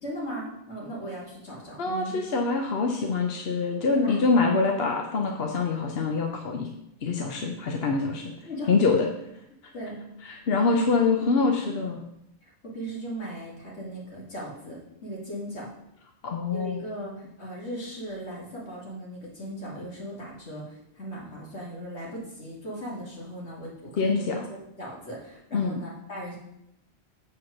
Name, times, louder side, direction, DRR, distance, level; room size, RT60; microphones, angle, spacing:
voice 1, 0.0-2.2 3.9-4.3 8.4-8.7 9.7-10.0 12.4-15.7 16.5-24.3 24.8-26.4, right 1 dB, 85° left, -4 dB, 2.8 m, -38 dB
voice 2, 1.8-6.7 7.0-8.3 8.7-9.1 10.2-12.0 16.2-16.8 24.0-24.4 25.5-25.8, left 4 dB, 65° left, 3 dB, 1.0 m, -25 dB
7.5 x 4.6 x 6.4 m, 0.81 s
omnidirectional pair, 1.1 m